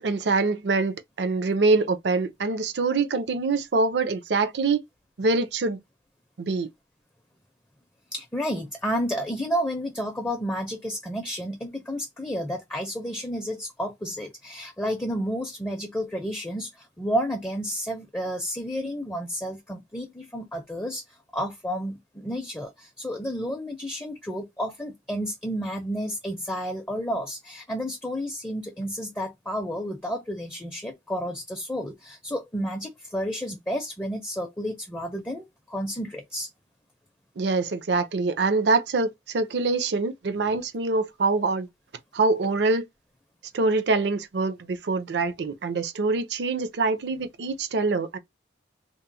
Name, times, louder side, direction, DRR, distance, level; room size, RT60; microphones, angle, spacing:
voice 1, 0.0-4.8 5.2-5.8 6.4-6.7 37.4-41.7 42.1-42.9 43.5-48.2, right 3 dB, 65° right, 0.5 m, -24 dB
voice 2, 8.1-21.0 21.3-36.5, equal, 10° left, 0.4 m, -31 dB
2.9 x 2.0 x 2.6 m
head